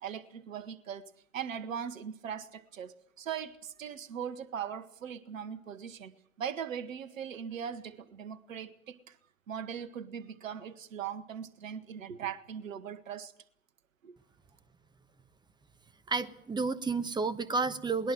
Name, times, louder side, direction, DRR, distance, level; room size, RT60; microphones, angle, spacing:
voice 1, 0.0-6.1 6.4-9.2 9.5-13.3 14.0-14.2, right 8 dB, 65° right, 16 dB, 1.7 m, -40 dB
voice 2, 16.1-18.1, right 4 dB, 10° right, 15 dB, 1.2 m, -31 dB
21.0 x 20.0 x 7.6 m, 0.68 s
figure-of-eight pair, 95°, 43 cm